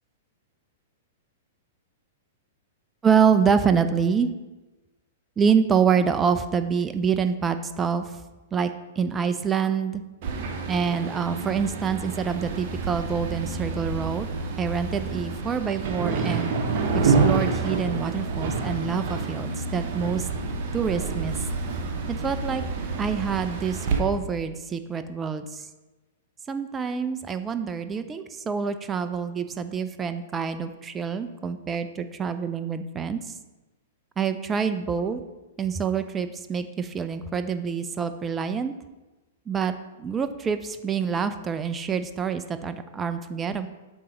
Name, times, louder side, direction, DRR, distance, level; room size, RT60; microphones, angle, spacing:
voice 1, 3.0-4.3 5.4-8.1 8.5-10.0 10.7-14.3 14.6-16.5 16.9-20.3 20.7-21.4 22.2-22.6 23.0-25.7 26.5-33.3 34.2-35.2 35.6-38.7 39.5-39.7 40.0-43.7, right 6 dB, 20° right, 9 dB, 0.4 m, -26 dB
sound 1, 10.2-24.0, right 4 dB, 50° right, 0.8 m, -28 dB
7.3 x 2.9 x 5.1 m, 1.1 s
figure-of-eight pair, 105°, 0 cm